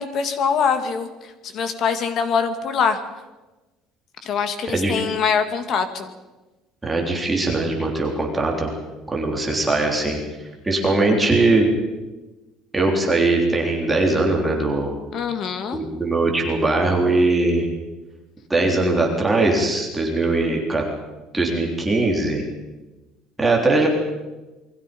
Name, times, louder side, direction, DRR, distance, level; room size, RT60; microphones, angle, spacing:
voice 1, 0.0-3.0 4.2-6.1 15.1-15.8, left 6 dB, 40° left, 8 dB, 2.4 m, -23 dB
voice 2, 6.8-8.7 9.1-10.2 10.6-11.7 12.7-15.0 15.7-17.7 18.5-20.8 21.3-22.4 23.4-23.9, right 2 dB, 10° right, 0 dB, 3.9 m, -20 dB
28.5 x 22.5 x 5.5 m, 1.1 s
cardioid pair, 165°, 0 cm